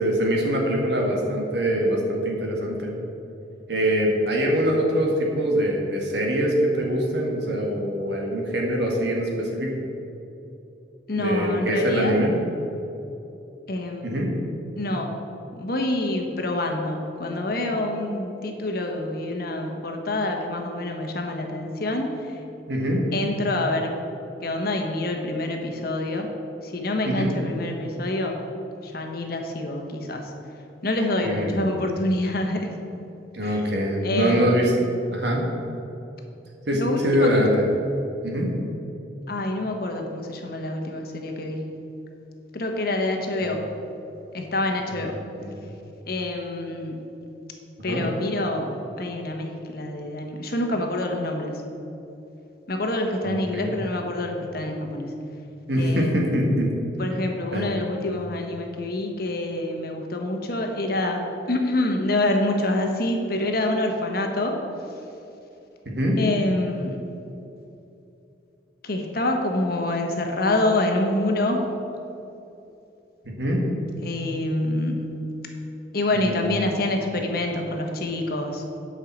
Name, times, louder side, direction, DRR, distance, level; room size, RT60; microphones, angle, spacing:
voice 1, 0.0-2.9 3.7-9.7 11.2-12.3 14.0-14.3 22.7-23.0 27.1-27.3 31.2-31.7 33.3-34.7 35.1-35.4 36.7-37.5 38.2-38.5 44.9-45.1 45.4-45.6 47.8-48.0 53.2-53.7 55.7-56.7 57.5-57.7 65.9-66.2 73.3-73.6 76.1-76.6, equal, 65° right, 0 dB, 1.8 m, -23 dB
voice 2, 11.1-12.2 13.7-14.2 14.8-15.1 15.6-22.4 23.1-23.9 24.4-26.3 26.6-28.4 28.8-30.3 30.8-32.7 33.4-33.6 34.0-34.6 36.7-37.4 39.3-41.7 42.5-43.7 44.3-45.1 46.1-47.0 47.8-51.6 52.7-55.1 55.8-56.4 57.0-64.6 66.2-67.0 68.8-71.6 74.0-75.1 75.9-78.6, left 1 dB, 55° left, 3 dB, 1.2 m, -26 dB
8.9 x 5.7 x 7.5 m, 2.8 s
head